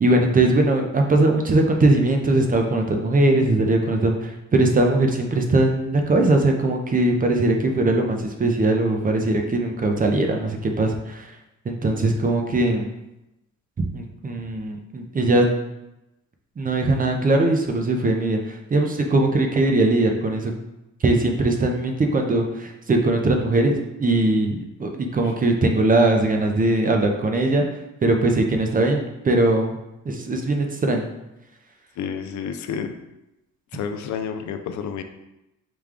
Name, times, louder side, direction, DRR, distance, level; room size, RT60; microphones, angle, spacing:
voice 1, 0.0-11.3 11.6-12.9 13.8-15.5 16.6-20.5 21.0-27.6 28.0-29.8 30.0-31.1, right 2 dB, 30° right, 3 dB, 0.6 m, -20 dB
voice 2, 32.0-32.9 33.7-35.0, left 7 dB, 70° left, 7 dB, 0.5 m, -30 dB
4.9 x 2.3 x 3.6 m, 0.93 s
cardioid pair, 90°, 30 cm